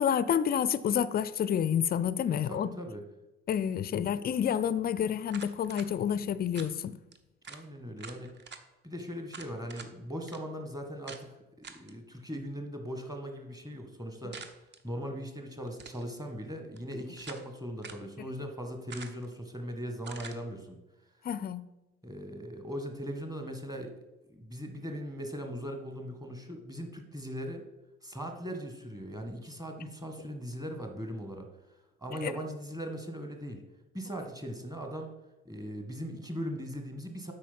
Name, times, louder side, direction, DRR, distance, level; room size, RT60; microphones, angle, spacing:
voice 1, 0.0-2.7 3.5-6.9 21.2-21.6 32.2-32.3, left 8 dB, 30° left, 0.5 m, -29 dB
voice 2, 2.3-3.0 7.4-8.3 8.8-11.3 11.7-14.4 14.8-20.8 22.0-23.9 24.3-27.6 28.0-31.5 32.0-33.6 33.9-35.1 35.4-37.3, equal, 10° right, 1.6 m, -39 dB
sound 1, 5.3-5.9 6.5-6.7 7.1-7.2 7.4-7.6 8.0-8.6 9.3-9.9 10.3-10.4 11.1-11.2 11.6-11.9 14.3-14.8 15.7-16.1 16.8-17.5 17.8-18.1 18.9-19.3 20.0-20.4, right 5 dB, 30° right, 0.9 m, -46 dB
8.3 x 5.2 x 5.5 m
figure-of-eight pair, 50°, 35 cm